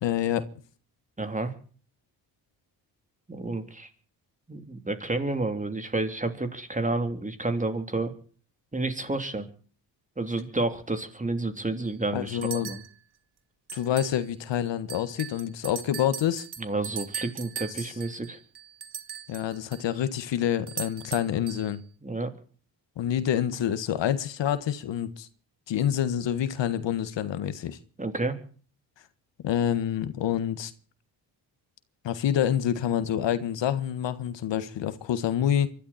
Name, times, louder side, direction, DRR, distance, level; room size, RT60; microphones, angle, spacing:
voice 1, 0.0-0.4 12.1-12.7 13.7-16.5 17.8-17.9 19.3-21.8 23.0-25.3 25.7-27.8 29.4-30.7 32.0-35.7, left 10 dB, 75° left, 1.7 m, -27 dB
voice 2, 1.2-1.5 3.3-3.9 4.5-8.1 8.7-9.5 10.2-12.8 16.6-18.4 22.0-22.3 28.0-28.4, right 2 dB, 15° right, 3.2 m, -30 dB
sound 1, 11.8-11.9 12.4-12.9 13.7-14.2 14.5-14.6 14.9-19.9 20.7-21.7, right 8 dB, 60° right, 2.3 m, -39 dB
24.5 x 12.5 x 4.3 m
cardioid pair, 85°, 44 cm